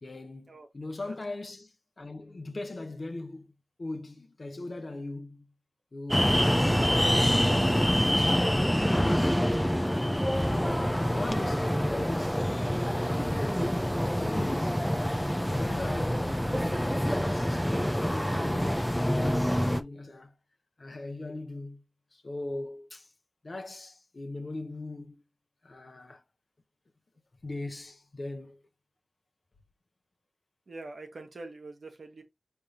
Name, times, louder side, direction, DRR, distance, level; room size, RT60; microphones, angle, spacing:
voice 1, 0.0-3.5 3.8-5.5 5.9-7.6 8.0-9.7 10.4-12.5 13.1-13.8 14.2-20.3 20.8-21.8 22.1-23.1 23.4-25.2 25.6-26.2 27.4-28.6, left 2 dB, 50° left, 1.0 m, -40 dB
sound 1, 6.1-19.8, equal, 5° left, 0.6 m, -26 dB
voice 2, 30.7-32.2, right 2 dB, 70° right, 1.3 m, -45 dB
4.9 x 3.4 x 2.9 m
cardioid pair, 55°, 0 cm